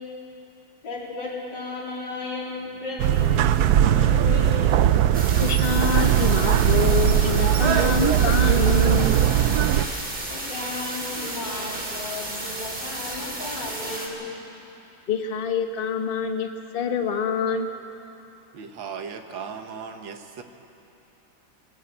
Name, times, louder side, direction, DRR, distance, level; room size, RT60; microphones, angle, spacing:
voice 1, 0.8-4.9 10.3-14.3, left 2 dB, 70° left, -3 dB, 4.1 m, -34 dB
sound 1, 3.0-9.9, right 10 dB, 70° right, 1.0 m, -19 dB
sound 2, 5.1-14.1, right 1 dB, 30° right, 2.8 m, -33 dB
voice 2, 5.4-9.1 15.1-17.7, left 5 dB, 35° left, 5 dB, 1.2 m, -26 dB
voice 3, 18.5-20.4, right 6 dB, 90° right, 6 dB, 2.0 m, -37 dB
20.0 x 18.0 x 8.5 m, 2.8 s
omnidirectional pair, 2.0 m